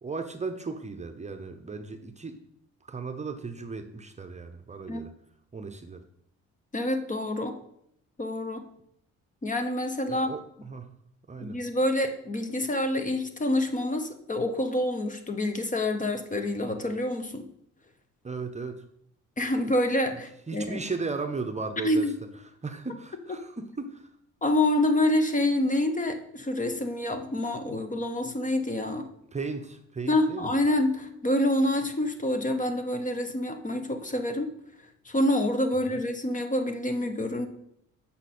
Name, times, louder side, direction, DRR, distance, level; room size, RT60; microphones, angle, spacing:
voice 1, 0.0-2.4 2.9-5.1 5.5-6.0 10.1-10.9 11.3-11.6 18.2-18.8 20.5-22.1 22.6-24.1 29.3-30.6 35.9-36.0, right 4 dB, 25° right, 6 dB, 0.8 m, -36 dB
voice 2, 6.7-7.6 8.2-8.6 9.4-10.3 11.4-17.5 19.4-20.8 21.8-22.1 24.4-29.1 30.1-34.5 35.0-37.5, left 1 dB, 25° left, 7 dB, 0.9 m, -27 dB
7.8 x 5.7 x 4.3 m, 0.72 s
cardioid pair, 90°, 30 cm